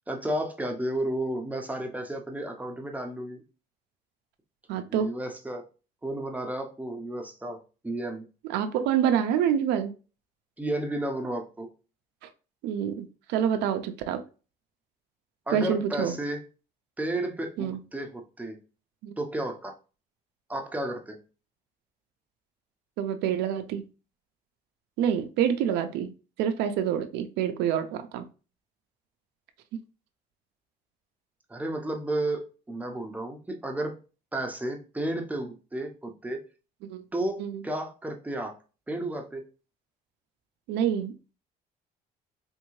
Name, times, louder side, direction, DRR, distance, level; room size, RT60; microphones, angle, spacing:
voice 1, 0.1-3.4 4.9-5.6 6.0-7.6 7.8-8.3 10.6-11.7 15.5-16.4 17.0-18.6 19.2-19.7 20.5-21.2 31.5-34.0 34.3-36.4 37.1-38.5 38.9-39.4, right 1 dB, 10° right, 0.6 m, -32 dB
voice 2, 4.7-5.1 8.5-9.9 12.2-12.3 12.6-14.2 15.5-16.2 17.6-17.8 19.0-19.1 23.0-23.8 25.0-26.1 26.4-28.2 36.9-37.1 37.4-37.6 40.7-41.1, right 9 dB, 85° right, 0.4 m, -27 dB
3.5 x 2.6 x 3.0 m
cardioid pair, 110°, 17 cm